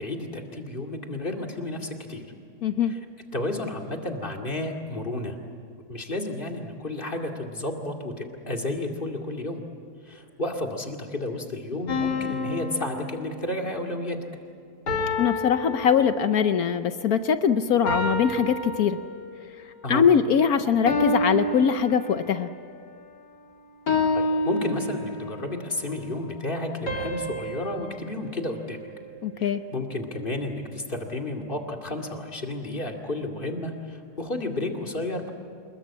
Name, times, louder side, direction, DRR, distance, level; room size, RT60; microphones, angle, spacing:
voice 1, 0.0-2.2 2.9-3.0 3.3-5.4 5.9-9.6 10.0-14.2 19.8-20.1 24.1-28.8 29.4-35.3, left 2 dB, 30° left, 2 dB, 2.6 m, -32 dB
voice 2, 2.6-2.9 15.2-19.0 19.9-22.5 29.2-29.6, left 7 dB, 65° left, 10 dB, 1.2 m, -22 dB
sound 1, 11.9-13.8 14.9-16.5 17.9-19.4 20.9-22.5 23.9-25.5 26.9-29.2, left 2 dB, 80° left, 3.8 m, -29 dB
27.0 x 21.5 x 8.6 m, 2.3 s
omnidirectional pair, 1.8 m